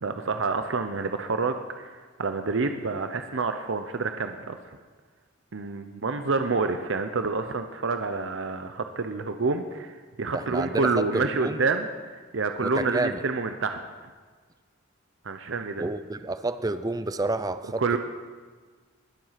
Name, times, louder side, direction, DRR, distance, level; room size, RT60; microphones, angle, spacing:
voice 1, 0.0-4.6 5.5-13.8 15.2-15.9 17.8-18.0, right 4 dB, 65° right, 7 dB, 0.7 m, -28 dB
voice 2, 10.3-11.6 12.6-13.2 15.8-18.0, right 2 dB, 20° right, 12 dB, 0.5 m, -29 dB
21.0 x 7.8 x 5.8 m, 1.5 s
head